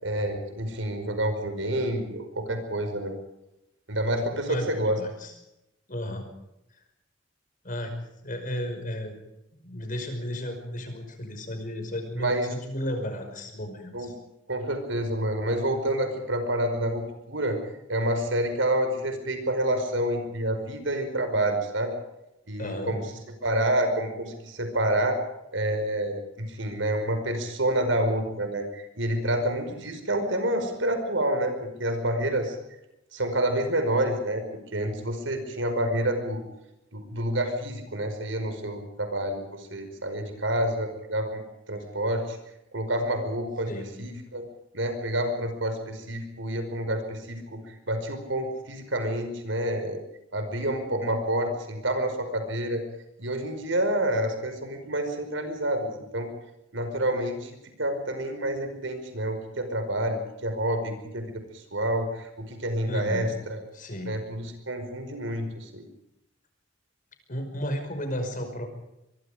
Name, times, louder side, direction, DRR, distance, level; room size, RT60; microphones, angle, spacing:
voice 1, 0.0-3.1 3.9-5.0 12.2-12.5 13.9-14.1 14.5-17.6 17.9-21.9 22.5-23.0 23.4-25.2 25.5-32.6 33.1-34.4 34.7-36.4 36.9-41.4 41.7-42.4 42.7-43.7 44.0-44.4 44.7-50.0 50.3-52.8 53.2-56.3 56.7-63.6 64.1-65.9, right 1 dB, 85° right, 7 dB, 5.2 m, -28 dB
voice 2, 4.5-5.3 5.9-6.3 7.6-7.9 8.2-9.2 9.6-14.1 22.6-23.0 43.7-43.9 62.9-63.3 63.7-64.2 67.3-68.7, equal, 45° left, 6 dB, 5.5 m, -33 dB
24.0 x 23.5 x 5.1 m, 0.88 s
head